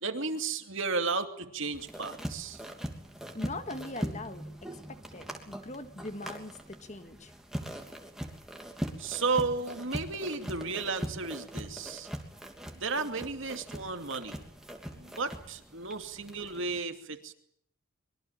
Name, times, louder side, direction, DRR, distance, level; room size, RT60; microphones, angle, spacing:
voice 1, 0.0-2.6 9.0-12.1 12.7-14.4 14.9-17.3, right 4 dB, 60° right, 6 dB, 2.6 m, -33 dB
sound 1, 1.7-16.8, equal, ahead, 3.0 m, -41 dB
voice 2, 3.3-4.4 4.7-7.3, left 2 dB, 30° left, 8 dB, 1.8 m, -41 dB
25.0 x 23.0 x 7.5 m, 0.70 s
head